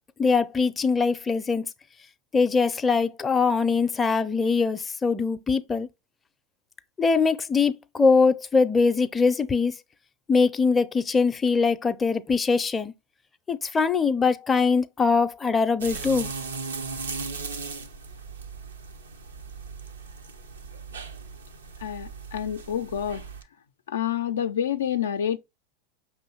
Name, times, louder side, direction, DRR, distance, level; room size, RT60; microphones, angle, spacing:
voice 1, 0.2-1.7 2.3-5.9 7.0-9.7 10.3-12.9 13.5-16.3, left 4 dB, 20° left, 0.5 m, -22 dB
sound 1, 15.8-23.4, right 4 dB, 90° right, 0.6 m, -37 dB
voice 2, 21.8-23.2 23.9-25.4, left 9 dB, 80° left, 0.3 m, -28 dB
5.4 x 3.1 x 2.9 m
hypercardioid pair, 95°, 0 cm